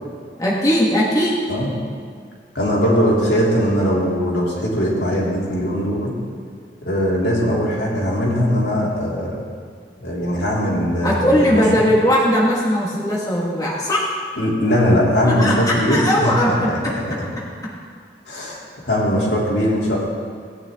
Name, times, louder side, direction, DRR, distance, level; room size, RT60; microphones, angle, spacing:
voice 1, 0.4-1.4 11.0-14.0 15.2-16.9, equal, 20° left, -4 dB, 1.4 m, -19 dB
voice 2, 2.5-6.2 6.8-9.4 10.0-11.6 14.4-16.8 18.3-20.0, equal, 80° left, -5 dB, 2.8 m, -20 dB
17.5 x 9.1 x 3.6 m, 2.1 s
head